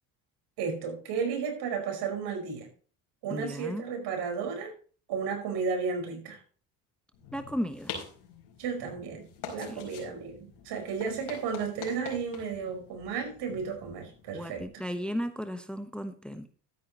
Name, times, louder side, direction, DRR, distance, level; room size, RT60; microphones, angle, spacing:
voice 1, 0.6-2.7 3.2-4.7 5.1-6.4 8.6-14.6, right 5 dB, 65° right, 4 dB, 5.2 m, -33 dB
voice 2, 3.3-3.9 7.3-8.0 9.6-10.1 14.3-16.5, equal, ahead, 9 dB, 1.1 m, -35 dB
sound 1, 7.1-14.7, left 6 dB, 70° left, 4.8 m, -45 dB
13.0 x 10.0 x 3.0 m, 0.39 s
hypercardioid pair, 70°, 44 cm